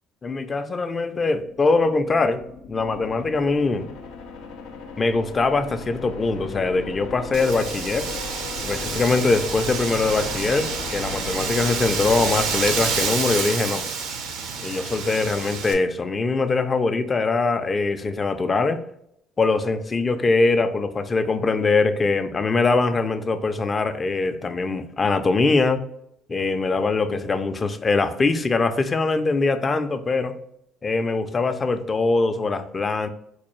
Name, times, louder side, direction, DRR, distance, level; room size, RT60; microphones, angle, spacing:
voice 1, 0.2-2.4 2.7-3.9 5.0-8.1 8.6-13.9 14.6-18.8 19.4-25.8 26.3-30.3 30.8-33.1, left 3 dB, 25° left, 9 dB, 0.3 m, -22 dB
sound 1, 1.2-14.3, left 4 dB, 90° left, 0.6 m, -37 dB
Wind, 7.3-15.7, right 5 dB, 85° right, 0.6 m, -28 dB
4.3 x 2.3 x 3.1 m, 0.74 s
cardioid pair, 125°, 0 cm